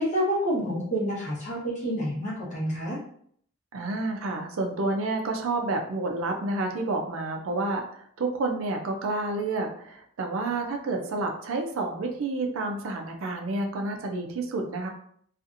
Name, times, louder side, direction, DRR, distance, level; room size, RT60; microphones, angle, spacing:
voice 1, 0.0-3.0, equal, 35° left, -6 dB, 1.0 m, -28 dB
voice 2, 3.7-14.9, right 2 dB, 65° right, 3 dB, 0.4 m, -29 dB
2.7 x 2.4 x 2.5 m, 0.63 s
head